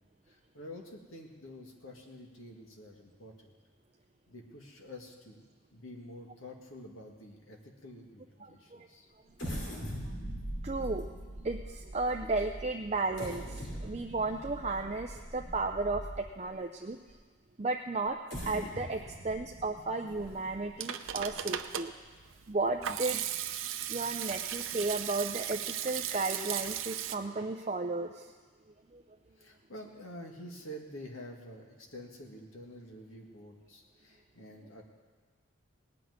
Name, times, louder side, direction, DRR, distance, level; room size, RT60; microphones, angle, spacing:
voice 1, 0.3-3.5 4.3-5.4 5.7-9.6 29.4-34.8, left 1 dB, 80° left, 1 dB, 2.0 m, -48 dB
voice 2, 8.4-8.9 10.6-17.0 17.6-18.2 18.4-21.9 22.5-23.2 23.9-28.3 28.9-29.0, right 3 dB, 30° right, 4 dB, 0.5 m, -34 dB
sound 1, 9.4-16.5 17.1-17.2 18.1-21.6 22.1-22.2 22.6-22.8, equal, 55° left, 3.1 m, -42 dB
Hands / Sink (filling or washing), 20.5-27.2, right 11 dB, 75° right, 0.6 m, -36 dB
18.5 x 6.1 x 9.3 m, 1.4 s
head